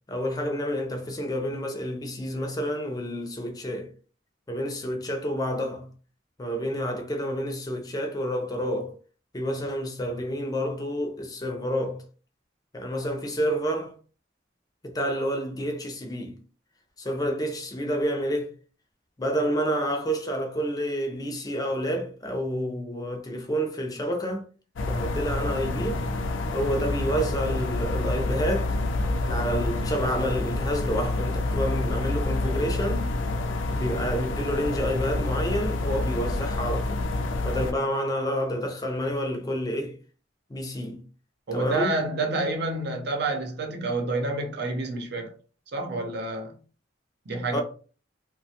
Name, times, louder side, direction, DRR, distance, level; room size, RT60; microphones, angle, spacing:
voice 1, 0.1-3.9 4.5-5.9 6.4-8.9 9.3-12.0 12.7-13.9 14.8-16.4 17.0-18.5 19.2-24.4 24.9-26.0 26.5-28.8 29.2-33.1 33.7-37.1 37.4-40.0 40.5-41.0 41.5-42.0 47.5-47.6, equal, 20° left, 0.5 m, -29 dB
sound 1, 24.8-37.7, left 2 dB, 90° left, 0.4 m, -28 dB
voice 2, 41.5-45.3 45.7-46.5 47.3-47.6, right 2 dB, 60° right, 0.7 m, -28 dB
2.9 x 2.2 x 2.8 m
head